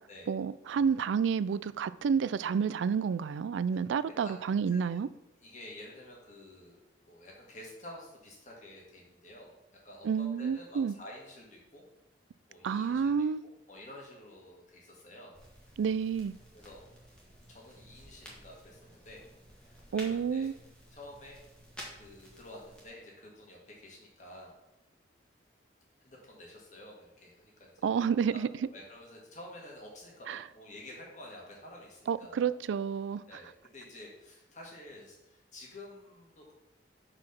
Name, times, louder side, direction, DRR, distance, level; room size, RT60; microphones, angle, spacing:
voice 1, 0.3-5.1 10.0-10.9 12.6-13.4 15.8-16.3 19.9-20.5 27.8-28.5 30.3-30.4 32.1-33.2, right 6 dB, 80° right, 0.3 m, -29 dB
voice 2, 4.7-6.8 7.1-9.6 9.8-11.8 12.5-13.1 13.7-15.4 15.6-15.7 16.5-16.8 17.5-19.2 19.9-20.5 20.9-21.4 22.0-24.6 26.0-32.5 33.3-36.5, left 1 dB, 40° left, 2.0 m, -50 dB
sound 1, 15.3-22.9, equal, 5° left, 1.6 m, -52 dB
5.9 x 4.9 x 5.9 m
head